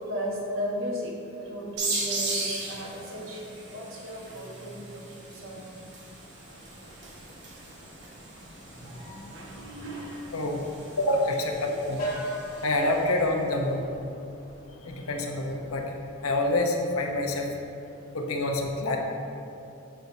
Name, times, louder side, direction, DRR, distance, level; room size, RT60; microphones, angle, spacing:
voice 1, 0.1-1.2 1.4-5.8 8.7-10.3, equal, 75° right, -2 dB, 1.2 m, -36 dB
sound 1, 1.8-13.1, right 2 dB, 55° right, 1.3 m, -38 dB
sound 2, 6.3-15.8, right 1 dB, 40° left, 1.3 m, -42 dB
voice 2, 10.3-10.6 11.0-12.0 12.6-13.9 14.8-16.0 16.2-17.5 18.1-19.0, left 2 dB, 90° left, 2 dB, 0.8 m, -27 dB
12.5 x 4.6 x 2.7 m, 2.7 s
head